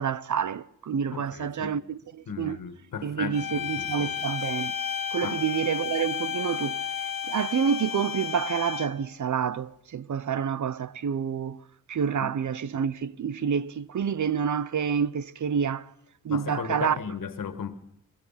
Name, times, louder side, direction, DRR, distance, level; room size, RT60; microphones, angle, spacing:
voice 1, 0.0-2.6 3.0-4.7 5.1-6.8 7.3-11.6 11.9-15.9 16.2-17.0, right 7 dB, 60° right, 0.9 m, -28 dB
voice 2, 1.1-1.7 2.3-4.2 5.2-5.4 12.2-12.3 16.3-17.7, left 7 dB, 75° left, 1.9 m, -36 dB
sound 1, 3.3-9.1, left 8 dB, 90° left, 1.4 m, -32 dB
23.5 x 22.0 x 5.8 m
cardioid pair, 60°, 33 cm